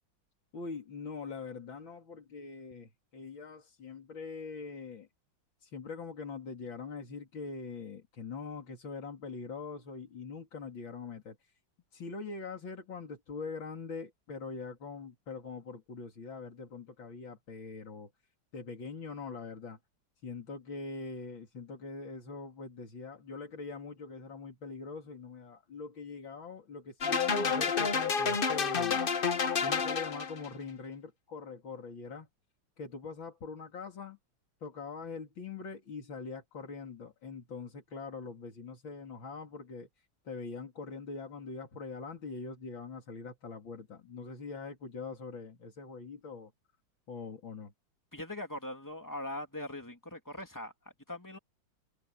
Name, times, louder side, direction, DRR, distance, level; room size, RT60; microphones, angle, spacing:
voice 1, 0.5-5.1 5.6-11.4 11.9-18.1 18.5-19.8 20.2-29.0 29.3-32.3 32.8-34.2 34.6-39.9 40.3-46.5 47.1-47.7, left 4 dB, 90° left, 3.7 m, -43 dB
sound 1, 27.0-30.5, left 5 dB, 35° left, 0.9 m, -29 dB
voice 2, 48.1-50.7 51.1-51.4, left 1 dB, 10° left, 2.6 m, -41 dB
omnidirectional pair, 2.1 m